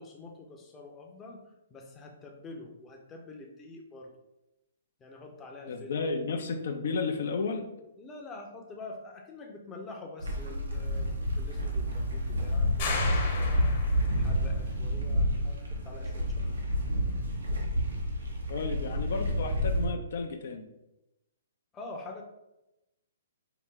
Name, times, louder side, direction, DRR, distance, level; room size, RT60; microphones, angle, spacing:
voice 1, 0.0-1.4 1.7-4.1 5.0-6.1 8.0-16.3 21.7-22.2, left 2 dB, 15° left, 1 dB, 0.6 m, -46 dB
voice 2, 5.7-7.7 18.5-20.7, left 4 dB, 65° left, 5 dB, 0.4 m, -32 dB
sound 1, 10.2-19.9, equal, 85° right, 0.9 m, -29 dB
sound 2, 12.8-14.3, left 3 dB, 45° left, 0.9 m, -34 dB
4.6 x 2.1 x 3.6 m, 0.92 s
hypercardioid pair, 135°, 0 cm